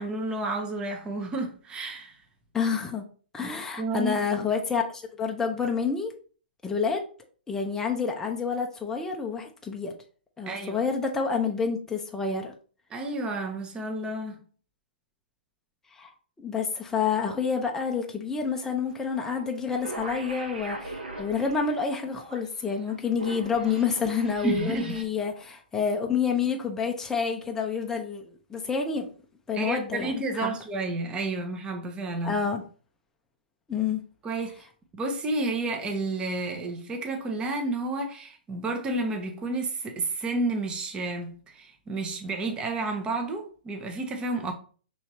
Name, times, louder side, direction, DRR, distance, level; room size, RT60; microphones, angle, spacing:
voice 1, 0.0-2.2 3.4-3.5 3.8-4.2 10.5-10.8 12.9-14.4 24.4-25.0 29.5-32.4 34.2-34.7 34.9-44.5, right 2 dB, 15° right, 0.9 m, -31 dB
voice 2, 2.5-3.0 3.3-6.1 6.6-7.0 7.5-9.9 10.4-12.5 15.9-16.1 16.4-29.1 29.5-30.6 32.2-32.6 33.7-34.0, left 6 dB, 10° left, 0.6 m, -28 dB
sound 1, 19.1-19.5 19.7-25.0, right 2 dB, 65° right, 1.4 m, -40 dB
5.5 x 3.1 x 2.9 m
figure-of-eight pair, 120°, 5 cm